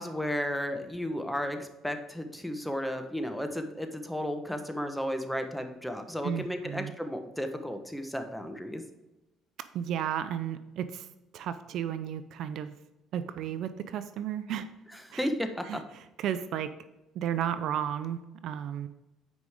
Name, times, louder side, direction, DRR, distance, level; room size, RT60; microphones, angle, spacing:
voice 1, 0.0-8.8 15.2-15.8, equal, ahead, 6 dB, 1.1 m, -33 dB
voice 2, 6.2-6.9 9.7-11.1 11.3-12.7 13.1-14.7 15.1-15.3 15.7-16.7 17.1-18.9, right 9 dB, 70° right, 12 dB, 0.5 m, -33 dB
9.4 x 5.2 x 3.6 m, 0.97 s
supercardioid pair, 85°, 0 cm